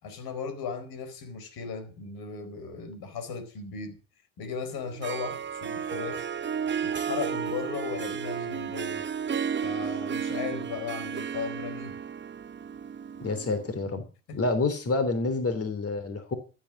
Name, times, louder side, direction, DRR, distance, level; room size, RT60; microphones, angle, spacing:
voice 1, 0.0-4.0 4.4-6.3 6.8-9.1 9.6-12.0 14.3-14.4, left 5 dB, 60° left, 4.6 m, -36 dB
Harp, 4.8-13.7, right 7 dB, 25° right, 0.9 m, -33 dB
voice 2, 13.2-14.0 14.3-16.3, left 3 dB, 35° left, 3.4 m, -28 dB
13.5 x 9.0 x 7.3 m
hypercardioid pair, 60°, 41 cm